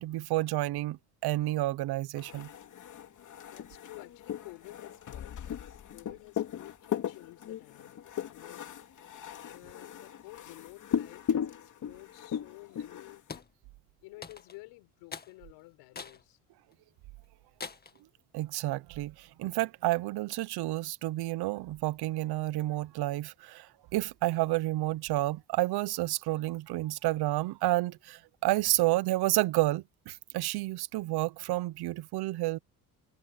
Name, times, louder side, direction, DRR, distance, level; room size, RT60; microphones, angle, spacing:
voice 1, 0.0-2.5 18.3-23.7 23.9-32.6, right 17 dB, 65° right, 1.1 m, -30 dB
sound 1, 2.2-13.4, left 9 dB, 45° left, 2.7 m, -37 dB
voice 2, 3.5-8.7 9.5-13.2 14.0-16.4, left 22 dB, 80° left, 5.1 m, -52 dB
sound 2, 13.3-13.5 14.2-14.6 15.1-15.3 15.9-16.2 16.7-16.8 17.6-18.0, left 5 dB, 20° left, 2.1 m, -43 dB
cardioid pair, 105°, 42 cm